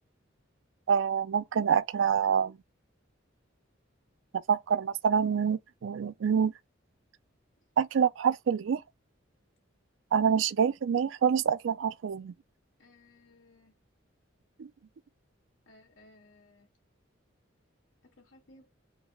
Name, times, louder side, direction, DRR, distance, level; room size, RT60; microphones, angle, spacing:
voice 1, 0.9-2.6 4.5-6.5 7.8-8.8 10.1-12.3 14.6-14.7, right 7 dB, 75° right, 0.4 m, -26 dB
voice 2, 12.8-13.7 15.7-16.7 18.2-18.7, left 2 dB, 85° left, 2.0 m, -59 dB
4.4 x 3.0 x 2.3 m
head